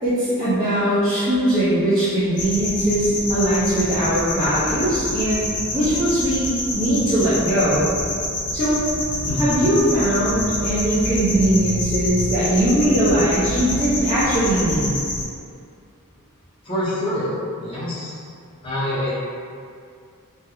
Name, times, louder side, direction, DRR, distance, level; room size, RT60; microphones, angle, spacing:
voice 1, 0.0-7.9 8.5-8.8 9.4-14.9, right 1 dB, 20° right, -13 dB, 0.5 m, -20 dB
sound 1, 2.3-15.2, left 1 dB, 90° left, 0.6 m, -27 dB
voice 2, 9.2-9.6 16.6-17.3 17.6-18.1 18.6-19.1, left 1 dB, 25° left, -9 dB, 0.6 m, -25 dB
2.3 x 2.0 x 2.9 m, 2.3 s
head